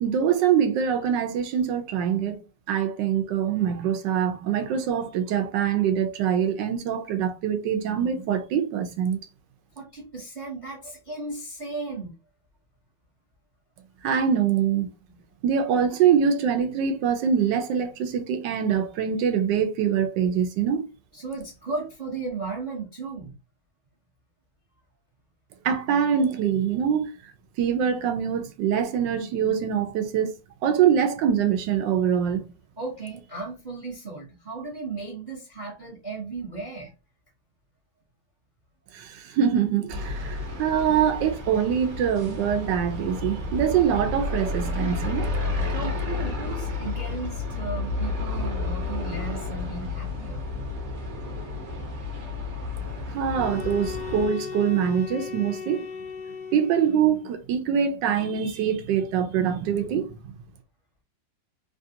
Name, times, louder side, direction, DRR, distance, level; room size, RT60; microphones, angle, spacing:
voice 1, 0.0-2.4 2.7-9.2 14.0-14.9 15.4-20.9 25.6-27.1 27.6-30.3 30.6-32.5 38.9-45.3 53.1-55.9 56.5-60.3, right 8 dB, 75° right, 1.3 m, -24 dB
voice 2, 9.8-12.1 15.1-15.2 21.1-23.4 32.8-36.9 45.7-50.4, right 3 dB, 40° right, 0.6 m, -35 dB
sound 1, 39.9-54.3, left 3 dB, 55° right, 1.2 m, -31 dB
sound 2, 53.3-57.3, left 6 dB, 80° left, 1.4 m, -37 dB
3.4 x 2.4 x 2.7 m
omnidirectional pair, 2.0 m